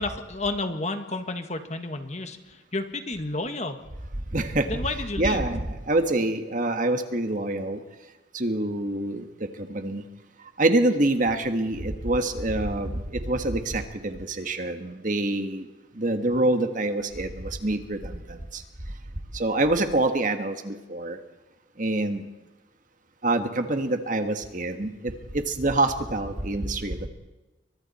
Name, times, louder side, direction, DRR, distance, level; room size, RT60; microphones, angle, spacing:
voice 1, 0.0-3.8 4.6-5.5, left 2 dB, 35° left, 7 dB, 1.7 m, -31 dB
voice 2, 4.3-4.7 5.2-5.6 5.9-7.8 8.3-9.2 9.7-10.0 10.6-12.9 13.3-15.6 16.0-18.1 19.3-21.2 21.8-22.2 23.2-24.9 25.6-27.1, right 2 dB, 40° right, 7 dB, 1.6 m, -25 dB
29.5 x 24.0 x 4.3 m, 1.1 s
head